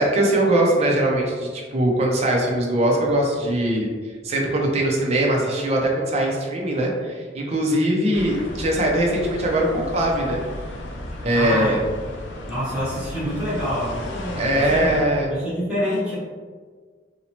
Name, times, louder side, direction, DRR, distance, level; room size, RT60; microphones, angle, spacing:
voice 1, 0.0-3.9 4.2-10.4 11.2-11.8 14.4-15.3, right 1 dB, 35° right, -1 dB, 0.4 m, -21 dB
sound 1, 8.1-15.0, left 1 dB, 85° left, 0.4 m, -34 dB
voice 2, 11.3-11.8 12.5-15.0 15.3-16.1, equal, 5° right, -11 dB, 1.0 m, -26 dB
2.7 x 2.1 x 2.8 m, 1.6 s
head